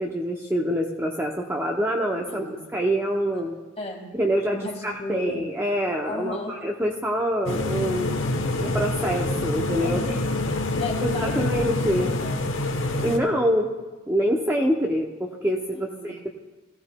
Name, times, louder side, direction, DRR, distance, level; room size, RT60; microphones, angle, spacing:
voice 1, 0.0-2.4 2.7-3.6 4.2-8.2 8.6-10.0 11.0-12.1 13.0-13.7 14.1-16.2, equal, 10° right, 0 dB, 0.6 m, -25 dB
voice 2, 4.5-5.4 6.1-6.6 9.8-12.4 13.2-13.5 15.7-16.2, left 2 dB, 30° left, 1 dB, 1.7 m, -36 dB
sound 1, 7.5-13.2, left 2 dB, 70° left, 1.1 m, -26 dB
19.0 x 14.5 x 2.2 m, 1.2 s
head